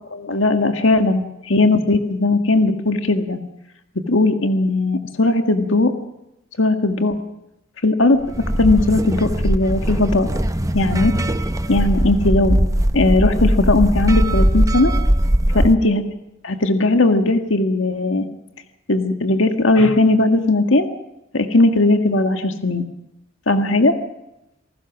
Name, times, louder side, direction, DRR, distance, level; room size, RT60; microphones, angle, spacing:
voice 1, 0.1-3.4 4.1-5.9 6.6-7.2 7.8-8.2 8.6-10.3 10.7-11.2 11.7-12.6 12.9-14.9 15.5-16.0 16.4-18.3 18.9-20.9 21.3-22.9 23.5-24.0, left 2 dB, 90° left, 6 dB, 1.8 m, -17 dB
sound 1, 8.2-15.7, right 1 dB, 15° right, 0.9 m, -19 dB
28.0 x 19.0 x 6.1 m, 0.90 s
head